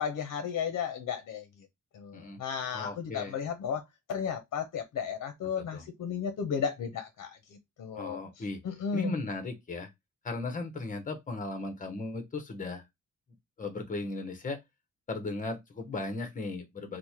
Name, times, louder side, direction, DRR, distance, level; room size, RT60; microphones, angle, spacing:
voice 1, 0.0-1.5 1.9-3.8 4.1-7.4 7.8-8.2 8.6-9.1, left 7 dB, 60° left, 0.6 m, -34 dB
voice 2, 2.7-3.3 5.6-5.9 7.9-8.6 8.9-9.9 10.2-12.8 13.6-14.6 15.1-17.0, left 2 dB, 25° left, 0.8 m, -36 dB
3.1 x 2.1 x 4.1 m
wide cardioid pair, 155°, 31 cm